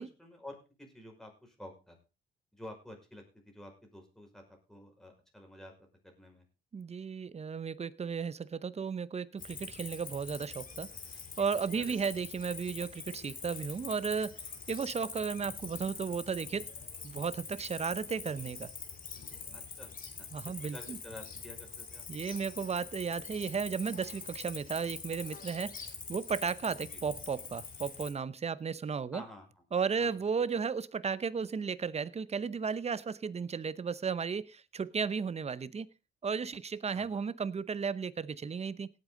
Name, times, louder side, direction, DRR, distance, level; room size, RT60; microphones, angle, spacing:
voice 1, 0.0-2.0 2.5-6.4 11.7-12.0 19.5-19.9 20.4-22.1 26.9-27.0 29.1-29.6 30.0-30.2 36.9-37.2, left 1 dB, ahead, 2 dB, 5.4 m, -50 dB
voice 2, 6.7-10.9 11.4-14.4 14.7-16.7 17.0-18.7 20.3-21.0 22.1-29.2 29.7-35.9 36.2-38.9, right 6 dB, 35° right, 17 dB, 0.8 m, -34 dB
Cricket, 9.4-28.1, left 5 dB, 45° left, 3.1 m, -45 dB
17.5 x 8.4 x 3.9 m, 0.30 s
cardioid pair, 90°, 20 cm